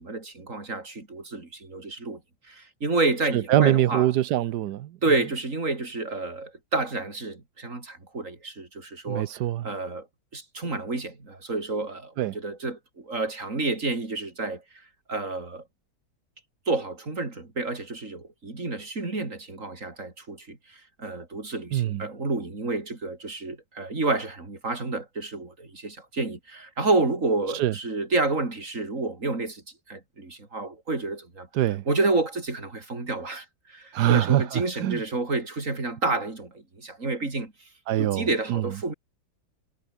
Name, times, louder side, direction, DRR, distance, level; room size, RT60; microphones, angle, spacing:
voice 1, 0.0-2.2 2.5-4.1 5.0-9.3 9.6-10.1 10.3-14.6 15.1-15.6 16.7-20.6 21.0-29.6 29.9-31.5 31.9-37.5 38.0-38.9, right 3 dB, 40° right, 4.5 m, -29 dB
voice 2, 3.3-5.0 9.1-9.7 12.2-12.4 21.7-22.1 27.5-27.7 31.5-31.8 33.9-35.0 37.9-38.8, right 13 dB, 65° right, 1.2 m, -24 dB
omnidirectional pair, 2.1 m